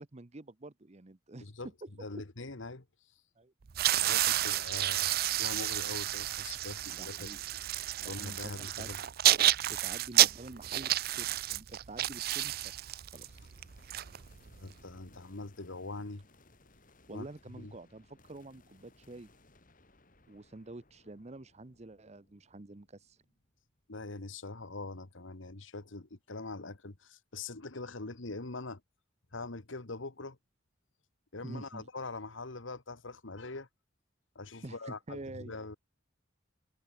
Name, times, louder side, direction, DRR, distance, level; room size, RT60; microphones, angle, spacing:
voice 1, 0.0-1.5 1.8-1.9 2.1-2.2 3.4-3.5 6.9-7.4 8.0-8.9 9.7-12.6 13.1-13.4 17.1-19.3 20.3-23.2 31.4-31.9 34.6-35.5, right 2 dB, 35° right, 0.9 m, -47 dB
voice 2, 2.0-2.9 4.0-7.3 8.0-9.0 14.5-16.2 17.1-17.3 17.6-17.7 23.9-28.8 29.3-30.4 31.3-33.7 34.4-35.8, left 3 dB, 75° left, 1.7 m, -43 dB
sound 1, 3.7-14.7, right 13 dB, 50° right, 0.5 m, -30 dB
sound 2, 13.1-24.5, left 2 dB, 45° left, 3.2 m, -64 dB
head